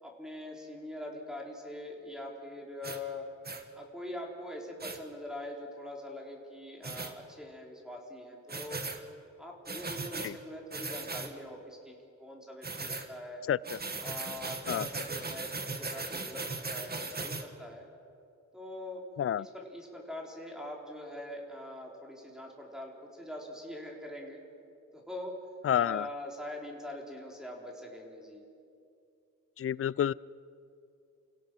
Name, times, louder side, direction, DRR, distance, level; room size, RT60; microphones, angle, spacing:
voice 1, 0.0-3.3 3.8-8.8 9.4-13.4 14.0-17.9 18.5-19.0 19.4-24.4 24.9-25.4 25.7-28.4, left 1 dB, ahead, -2 dB, 3.6 m, -43 dB
sound 1, 2.8-3.0 3.4-3.6 4.8-5.0 6.8-7.1 8.5-9.0 9.7-10.3 10.7-11.3 12.6-13.1 13.6-17.4, right 3 dB, 30° right, 1.7 m, -38 dB
voice 2, 25.6-26.1 29.6-30.1, left 10 dB, 50° left, 22 dB, 0.4 m, -28 dB
29.5 x 17.0 x 6.1 m, 2.5 s
wide cardioid pair, 100°, 30 cm